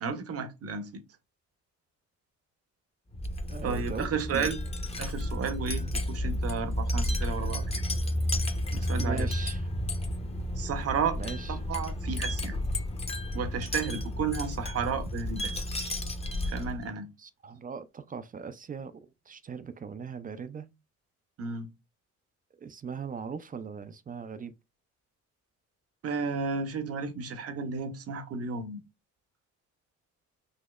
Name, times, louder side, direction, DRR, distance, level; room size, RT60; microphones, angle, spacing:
voice 1, 0.0-1.0 3.6-4.6 5.0-7.8 8.7-9.3 10.6-11.2 11.5-12.6 13.3-15.5 16.4-17.1 21.4-21.7 26.0-28.8, right 5 dB, 50° right, 0.8 m, -33 dB
Wind chime, 3.1-16.9, left 1 dB, 20° left, 0.7 m, -32 dB
voice 2, 3.5-4.5 9.0-9.7 11.2-11.6 17.2-20.7 22.6-24.5, right 6 dB, 30° right, 0.4 m, -39 dB
4.1 x 2.8 x 2.3 m
cardioid pair, 90°, 30 cm